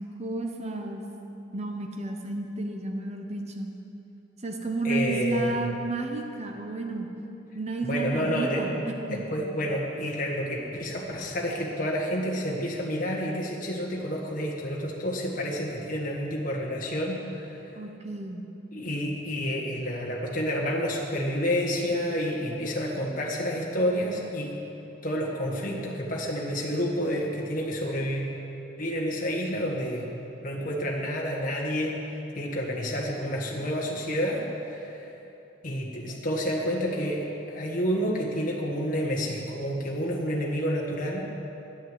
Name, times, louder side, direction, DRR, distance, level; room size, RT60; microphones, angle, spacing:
voice 1, 0.2-1.0 1.5-3.7 4.4-7.1 7.5-9.2 17.8-18.5, right 2 dB, 35° right, 3 dB, 0.9 m, -32 dB
voice 2, 4.8-5.7 7.8-8.8 9.1-17.6 18.7-24.6 25.0-28.3 28.8-30.1 30.4-31.9 32.3-35.1 35.6-41.3, equal, 45° left, -2 dB, 1.6 m, -29 dB
10.5 x 10.0 x 7.9 m, 3.0 s
head